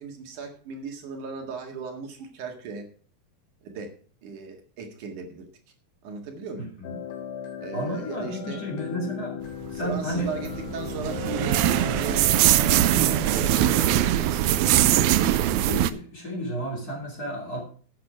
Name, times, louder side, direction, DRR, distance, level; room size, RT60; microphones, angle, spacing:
voice 1, 0.0-2.8 3.6-3.9 4.2-5.5 6.0-6.7 7.6-8.6 9.7-14.7, right 5 dB, 65° right, 3 dB, 3.2 m, -37 dB
voice 2, 6.6-6.9 7.7-9.4 9.7-10.4 15.6-17.6, equal, 25° left, -2 dB, 3.3 m, -32 dB
sound 1, 6.8-14.1, left 10 dB, 70° left, 2.7 m, -37 dB
sound 2, 10.0-15.9, right 12 dB, 90° right, 1.6 m, -22 dB
12.0 x 8.5 x 4.9 m, 0.43 s
omnidirectional pair, 4.1 m